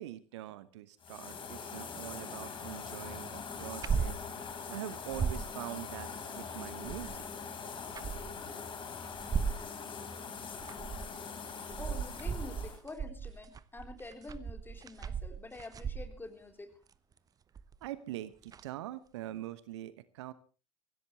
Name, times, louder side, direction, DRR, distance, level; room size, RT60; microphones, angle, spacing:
voice 1, 0.0-4.2 4.7-7.2 17.8-20.3, right 14 dB, 60° right, 15 dB, 1.0 m, -43 dB
sound 1, 1.0-12.8, left 5 dB, 30° left, 4.1 m, -43 dB
sound 2, 3.6-4.2 4.5-4.6 4.9-5.5 6.6-7.3 7.8-8.4 9.1-9.7 10.4-11.1 11.5-16.3 17.6-17.9 18.5-18.6, right 6 dB, 20° right, 0.8 m, -36 dB
voice 2, 11.8-16.7, left 2 dB, 15° left, 4 dB, 3.8 m, -47 dB
23.5 x 16.5 x 3.2 m, 0.36 s
figure-of-eight pair, 75°, 16 cm